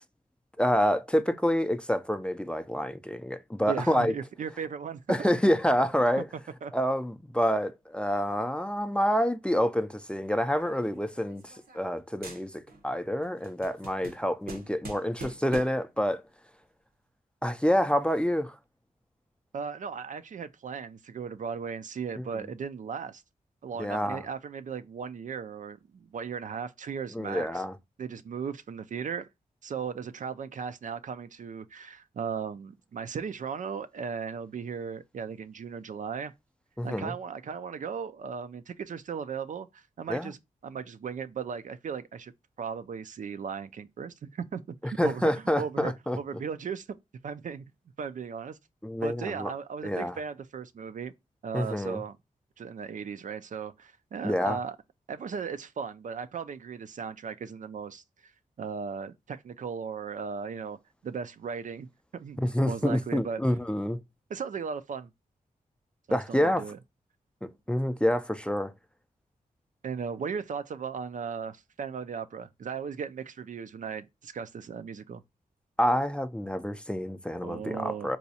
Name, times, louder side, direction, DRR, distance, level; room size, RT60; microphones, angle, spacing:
voice 1, 0.6-4.1 5.1-6.3 6.7-16.2 17.4-18.5 22.2-22.3 23.8-24.2 27.1-27.7 36.8-37.1 40.1-40.3 45.0-46.2 48.8-49.5 49.8-50.1 51.5-52.0 54.2-54.6 62.5-64.0 66.1-66.6 67.4-68.7 75.8-78.2, equal, 5° left, 0.4 m, -27 dB
voice 2, 3.7-5.3 6.1-6.2 6.6-6.7 19.5-23.2 23.6-27.6 28.0-29.3 29.6-36.3 36.8-40.4 40.6-42.3 42.6-46.9 47.2-47.6 48.0-48.6 49.0-51.1 51.4-52.2 52.6-54.8 55.1-58.0 58.6-60.8 61.0-61.9 62.1-63.4 64.3-65.1 66.1-66.8 69.8-75.2 77.4-78.1, right 6 dB, 60° right, 0.4 m, -37 dB
sound 1, 10.6-12.0 12.2-12.9 13.2-15.9, right 2 dB, 85° right, 1.0 m, -45 dB
4.1 x 2.3 x 2.7 m
cardioid pair, 60°, 15 cm